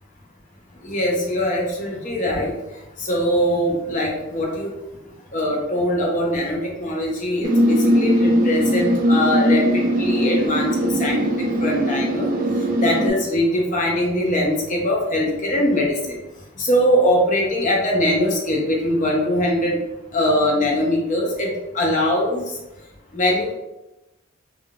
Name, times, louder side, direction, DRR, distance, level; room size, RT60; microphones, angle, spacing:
voice 1, 0.8-2.5 3.0-4.7 5.3-12.3 12.8-16.2 16.6-19.8 20.1-21.5 21.7-22.4 23.1-23.5, left 1 dB, 40° left, -1 dB, 0.7 m, -21 dB
sound 1, 7.4-13.1, equal, 40° right, 0.4 m, -20 dB
3.6 x 2.3 x 2.3 m, 0.96 s
head